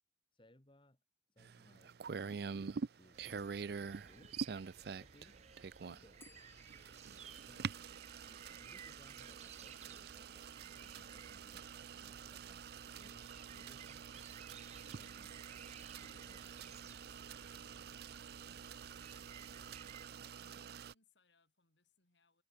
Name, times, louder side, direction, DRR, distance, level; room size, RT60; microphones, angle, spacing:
voice 1, 0.3-1.0 1.3-2.5 2.9-4.4 5.0-5.4 5.8-6.2 7.5-14.1 14.8-15.4 15.6-16.6 17.5-17.9, left 1 dB, 25° left, 1.8 m, -66 dB
sound 1, 1.4-20.9, right 6 dB, 55° right, 0.4 m, -47 dB
sound 2, 3.1-20.1, right 6 dB, 35° right, 1.0 m, -59 dB
voice 2, 5.1-6.4 14.7-15.1 16.0-22.4, left 4 dB, 75° left, 5.5 m, -76 dB
Bell, 6.2-9.0, left 5 dB, 10° left, 0.5 m, -68 dB
head